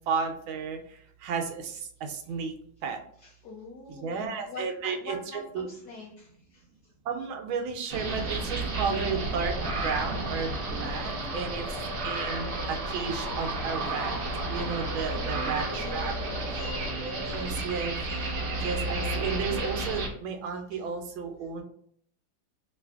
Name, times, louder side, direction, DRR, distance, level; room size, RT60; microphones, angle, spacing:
voice 1, 0.1-0.8 1.2-2.5 2.8-3.0 3.9-5.7 7.1-11.6 12.0-14.2 14.5-16.1 17.0-18.0 18.6-21.6, right 5 dB, 80° right, 5 dB, 1.4 m, -33 dB
voice 2, 3.2-6.7 7.8-8.0 8.3-8.7 10.7-11.4 15.1-17.8 18.1-18.3 20.7-20.8, left 2 dB, 75° left, -2 dB, 0.9 m, -45 dB
sound 1, 7.9-20.1, right 2 dB, 65° right, 0.8 m, -32 dB
3.2 x 2.7 x 3.4 m, 0.63 s
omnidirectional pair, 2.2 m